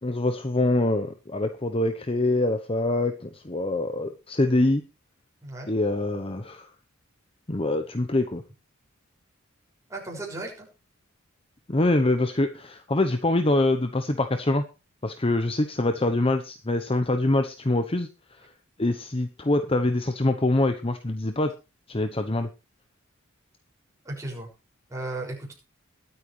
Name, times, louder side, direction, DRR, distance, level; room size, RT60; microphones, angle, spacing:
voice 1, 0.0-4.8 5.7-6.7 7.5-8.4 11.7-14.6 15.0-18.4 18.8-21.5 21.9-22.5, left 2 dB, 25° left, 8 dB, 0.9 m, -24 dB
voice 2, 9.9-10.7 24.0-24.5 24.9-25.5, right 2 dB, 15° right, -1 dB, 6.2 m, -35 dB
21.5 x 8.9 x 3.3 m, 0.31 s
head